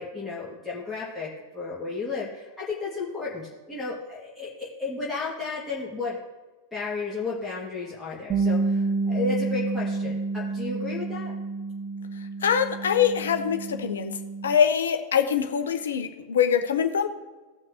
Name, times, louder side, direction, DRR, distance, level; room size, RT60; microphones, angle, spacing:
voice 1, 0.0-6.2 6.7-11.3, left 3 dB, 5° left, -8 dB, 2.1 m, -33 dB
Bass guitar, 8.3-14.5, right 3 dB, 25° right, 1.3 m, -29 dB
voice 2, 12.4-14.1 14.4-17.1, left 8 dB, 65° left, 7 dB, 0.9 m, -23 dB
17.0 x 6.0 x 3.0 m, 1.2 s
figure-of-eight pair, 90°, 0 cm